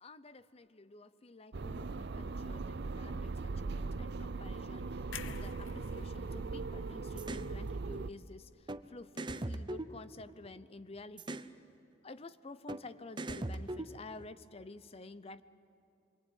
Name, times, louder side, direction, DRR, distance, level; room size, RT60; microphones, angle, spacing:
voice 1, 0.0-11.5 12.0-15.4, left 3 dB, 30° left, 15 dB, 0.7 m, -51 dB
sound 1, 1.5-8.1, right 3 dB, 60° right, 0.6 m, -39 dB
sound 2, 5.1-9.1 9.5-9.7, left 8 dB, 85° left, 0.7 m, -51 dB
sound 3, 7.2-7.5 8.7-8.8 9.2-10.6 11.2-11.5 12.7-12.8 13.2-14.3, right 2 dB, 25° right, 0.7 m, -40 dB
26.0 x 23.0 x 9.4 m, 2.9 s
head